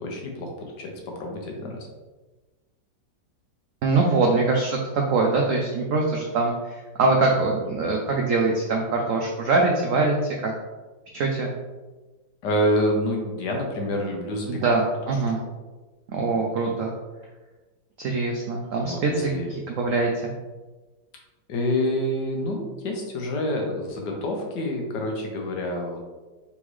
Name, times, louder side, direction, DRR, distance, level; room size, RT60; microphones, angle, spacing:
voice 1, 0.0-1.9 12.4-14.7 18.8-19.5 21.5-26.0, left 1 dB, 70° left, 1 dB, 1.4 m, -27 dB
voice 2, 3.8-10.5 11.1-11.5 14.5-15.4 16.1-16.9 18.0-20.3, right 3 dB, 85° right, 0 dB, 0.7 m, -23 dB
4.0 x 3.6 x 3.1 m, 1.2 s
omnidirectional pair, 2.0 m